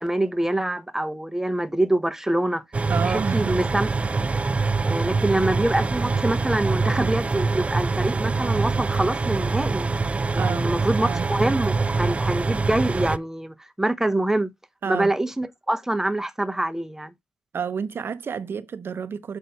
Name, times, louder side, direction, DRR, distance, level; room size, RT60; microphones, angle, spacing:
voice 1, 0.0-2.6 3.0-3.9 4.6-9.9 10.3-14.5 14.9-17.1, right 1 dB, 10° right, 0.8 m, -25 dB
sound 1, 2.7-13.2, right 4 dB, 25° right, 0.4 m, -24 dB
voice 2, 2.9-3.6 10.3-10.7 11.0-11.3 14.8-15.1 17.5-19.4, right 6 dB, 50° right, 0.8 m, -29 dB
7.6 x 2.7 x 5.7 m
supercardioid pair, 60°, 5 cm